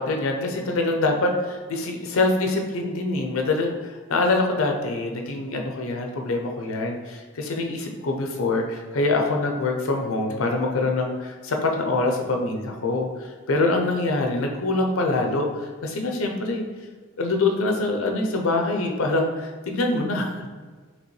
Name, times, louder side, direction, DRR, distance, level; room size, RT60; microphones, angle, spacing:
voice 1, 0.0-16.7 17.2-20.5, left 2 dB, 75° left, 3 dB, 0.6 m, -25 dB
5.1 x 3.0 x 3.1 m, 1.4 s
head